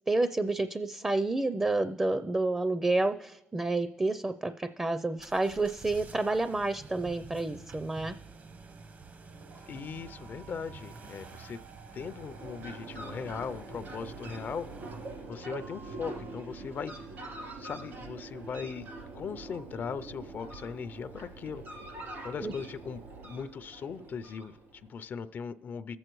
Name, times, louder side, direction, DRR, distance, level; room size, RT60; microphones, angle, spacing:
voice 1, 0.1-8.2 22.4-22.5, right 2 dB, 20° right, 11 dB, 0.5 m, -29 dB
sound 1, 5.2-15.3, right 4 dB, 50° right, 0.8 m, -49 dB
sound 2, 9.1-19.5, right 5 dB, 90° right, 4.0 m, -55 dB
voice 2, 9.7-11.6 11.9-14.7 15.3-17.1 17.5-21.6 22.2-26.0, left 6 dB, 60° left, 13 dB, 0.4 m, -39 dB
Fowl, 11.9-24.9, right 2 dB, 75° right, 3.2 m, -44 dB
21.0 x 7.8 x 3.1 m, 1.0 s
cardioid pair, 70°, 4 cm